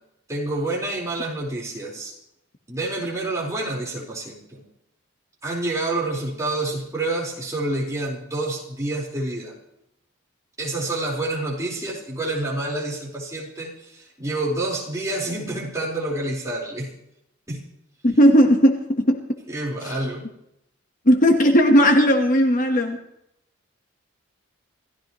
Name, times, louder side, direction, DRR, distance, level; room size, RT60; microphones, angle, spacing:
voice 1, 0.3-2.1 2.7-4.6 5.4-9.5 10.6-16.9 17.5-17.7 19.5-20.3, right 2 dB, 15° right, -4 dB, 4.4 m, -28 dB
voice 2, 18.0-19.2 19.8-19.9 21.0-23.0, equal, 40° left, 4 dB, 1.3 m, -16 dB
28.0 x 15.0 x 3.1 m, 0.80 s
head